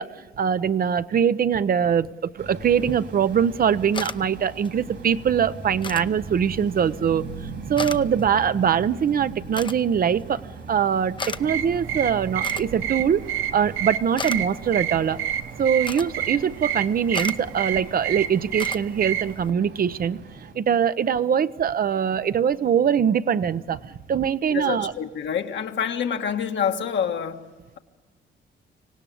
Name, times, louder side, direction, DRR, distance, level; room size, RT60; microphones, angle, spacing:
voice 1, 0.0-7.2 7.7-10.4 10.7-13.2 13.5-15.2 15.6-20.2 20.5-24.9, right 8 dB, 50° right, 13 dB, 0.7 m, -22 dB
sound 1, 2.4-20.5, right 4 dB, 65° right, 3.1 m, -40 dB
sound 2, 2.6-19.5, left 4 dB, 25° left, 0.7 m, -40 dB
sound 3, 11.2-19.3, right 10 dB, 80° right, 1.0 m, -30 dB
voice 2, 24.5-27.4, left 8 dB, 65° left, 5 dB, 1.6 m, -27 dB
25.5 x 17.5 x 8.5 m, 1.3 s
cardioid pair, 90°, 20 cm